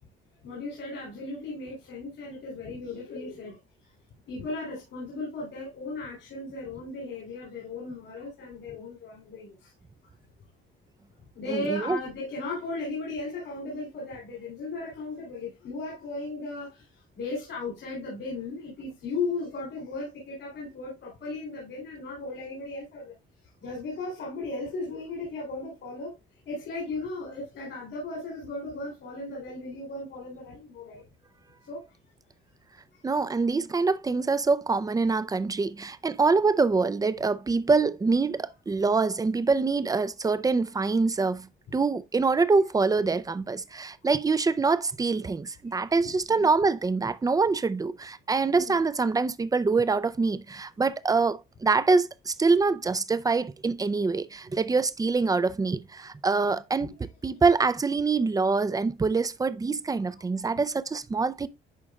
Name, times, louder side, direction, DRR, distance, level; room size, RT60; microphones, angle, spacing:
voice 1, 0.4-3.6 4.3-9.7 11.3-16.9 17.2-23.1 23.6-26.1 26.5-31.0 31.7-31.9 46.3-46.5 48.5-48.8 56.8-56.9 60.2-60.3, left 3 dB, 70° left, 3.5 m, -36 dB
voice 2, 11.5-12.0 33.0-41.5 41.7-57.0 57.2-61.5, right 4 dB, 20° right, 0.5 m, -25 dB
11.0 x 4.2 x 2.4 m
cardioid pair, 90°, 20 cm